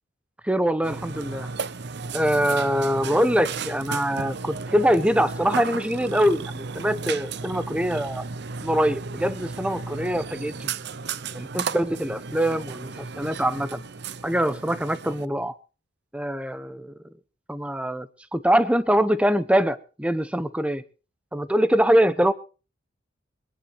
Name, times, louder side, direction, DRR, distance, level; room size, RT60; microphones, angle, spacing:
voice 1, 0.4-1.5 2.1-8.2 8.6-10.7 11.3-13.8 14.2-15.5 16.1-16.9 17.5-20.8 21.3-22.3, equal, 5° right, 13 dB, 0.9 m, -23 dB
Burping eructation, 0.8-15.3, right 4 dB, 55° right, 0.7 m, -34 dB
22.5 x 11.0 x 4.7 m, 0.37 s
head